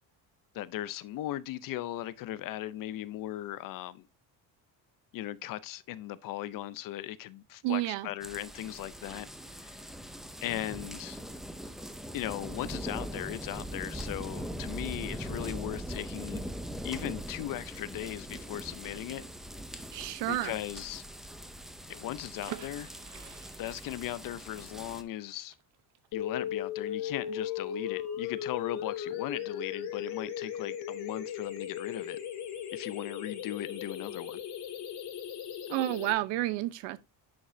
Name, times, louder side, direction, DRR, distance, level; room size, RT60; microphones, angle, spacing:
voice 1, 0.5-4.1 5.1-9.3 9.6-9.7 10.4-11.2 12.1-16.5 16.8-19.3 20.3-21.0 21.9-22.9 23.6-25.5 26.1-32.2 32.7-34.4, left 14 dB, 50° left, 0.6 m, -38 dB
voice 2, 7.6-8.1 19.9-20.5 35.7-37.0, right 15 dB, 75° right, 0.8 m, -30 dB
sound 1, 8.2-25.0, equal, ahead, 0.4 m, -41 dB
sound 2, 22.4-28.0 28.3-28.4 28.7-29.0, right 11 dB, 45° right, 0.8 m, -51 dB
sound 3, 26.1-36.1, left 9 dB, 70° left, 2.4 m, -37 dB
10.0 x 5.3 x 2.6 m
cardioid pair, 155°, 42 cm